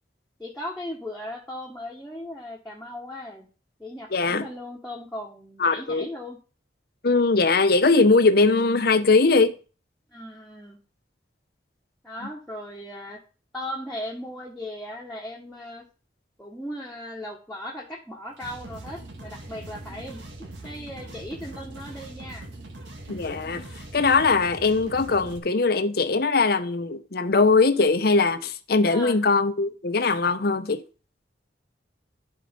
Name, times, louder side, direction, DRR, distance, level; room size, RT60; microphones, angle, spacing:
voice 1, 0.4-3.5 3.8-6.4 10.1-10.8 12.0-13.2 13.5-15.9 16.4-20.2 20.6-22.5 28.9-29.2, left 1 dB, 5° left, 1.3 m, -37 dB
voice 2, 4.1-4.5 5.6-6.1 7.0-9.5 23.1-23.7 23.9-30.8, left 3 dB, 60° left, 0.8 m, -21 dB
sound 1, 18.3-25.4, right 2 dB, 90° right, 1.9 m, -41 dB
10.5 x 5.1 x 5.2 m
head